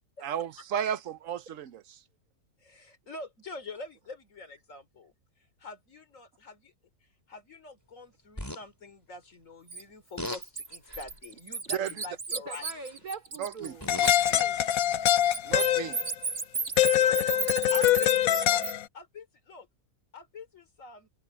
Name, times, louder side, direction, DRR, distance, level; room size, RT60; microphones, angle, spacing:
voice 1, 0.2-2.0 11.7-11.9 13.4-13.8 15.4-16.0, right 9 dB, 65° right, 1.1 m, -33 dB
voice 2, 2.6-5.1 5.6-6.7 7.3-12.7 16.9-17.4 17.7-18.7 18.9-19.7 20.1-21.1, left 3 dB, 60° left, 3.4 m, -45 dB
sound 1, 8.4-8.6 10.2-10.4 10.9-11.2 12.6-12.9 13.6-14.3 15.2-15.3, left 1 dB, 15° left, 3.6 m, -38 dB
Bird, 9.7-9.8 10.2-13.7 14.0-18.7, right 4 dB, 50° right, 2.2 m, -34 dB
voice 3, 12.3-13.8 14.3-14.6 17.3-17.4 18.0-18.1, right 4 dB, 90° right, 4.0 m, -42 dB
sound 2, 13.9-16.1 16.8-18.8, left 11 dB, 75° left, 1.2 m, -24 dB
omnidirectional pair, 1.5 m